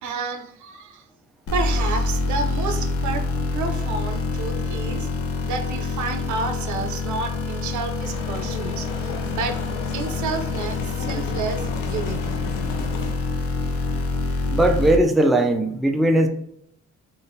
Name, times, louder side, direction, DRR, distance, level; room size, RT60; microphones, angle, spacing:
voice 1, 0.0-1.0 1.5-3.3 3.5-5.1 5.4-9.6 9.9-12.3, right 4 dB, 70° right, 6 dB, 0.7 m, -30 dB
sound 1, 1.5-15.0, left 3 dB, 50° left, 0.8 m, -26 dB
sound 2, 8.0-13.1, left 5 dB, 85° left, 0.7 m, -35 dB
voice 2, 14.5-16.3, right 1 dB, ahead, 3 dB, 0.4 m, -18 dB
3.8 x 2.5 x 3.9 m, 0.73 s
cardioid pair, 90°, 30 cm